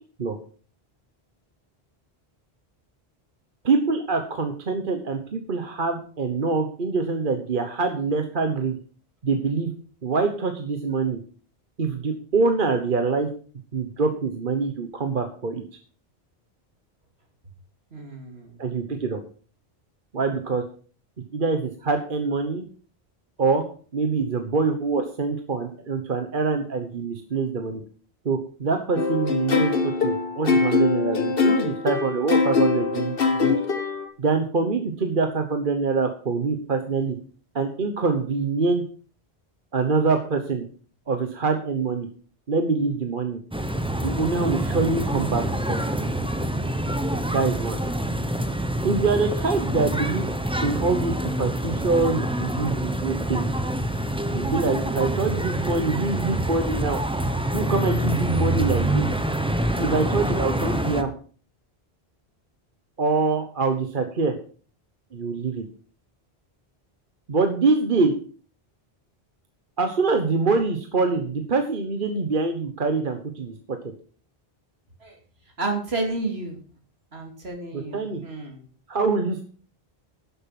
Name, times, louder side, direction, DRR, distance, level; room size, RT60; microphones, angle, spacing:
voice 1, 3.6-8.8 9.2-9.7 10.0-11.2 11.8-13.3 13.7-15.6 18.6-19.2 20.1-20.6 21.3-22.6 23.4-23.6 23.9-27.8 28.2-33.6 34.2-37.2 37.5-38.8 39.7-40.7 41.1-42.1 42.5-43.4 44.0-45.8 47.2-47.8 48.8-50.3 50.6-53.5 54.3-57.0 57.5-59.1 59.8-61.1 63.0-64.4 65.1-65.6 67.3-68.1 69.8-73.8 77.7-78.2 78.9-79.4, right 4 dB, 55° right, 6 dB, 1.3 m, -25 dB
voice 2, 17.9-18.6 75.0-75.2 75.6-76.6 77.1-78.7, right 2 dB, 75° right, 3 dB, 3.0 m, -31 dB
sound 1, 29.0-34.1, left 4 dB, 60° left, 1.6 m, -22 dB
sound 2, 43.5-61.0, right 1 dB, 5° right, 0.9 m, -26 dB
11.5 x 7.7 x 5.9 m, 0.41 s
omnidirectional pair, 1.1 m